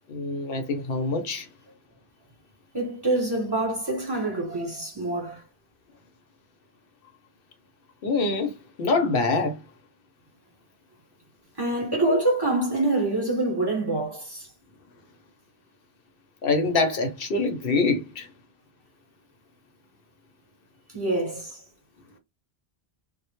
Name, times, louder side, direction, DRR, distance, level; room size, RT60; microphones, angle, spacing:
voice 1, 0.1-1.5 8.0-9.6 12.1-12.2 16.4-18.3, left 3 dB, 65° left, 0.7 m, -25 dB
voice 2, 2.7-5.4 11.6-14.5 20.9-21.6, right 2 dB, 25° right, 0.8 m, -26 dB
2.1 x 2.0 x 2.9 m
omnidirectional pair, 1.1 m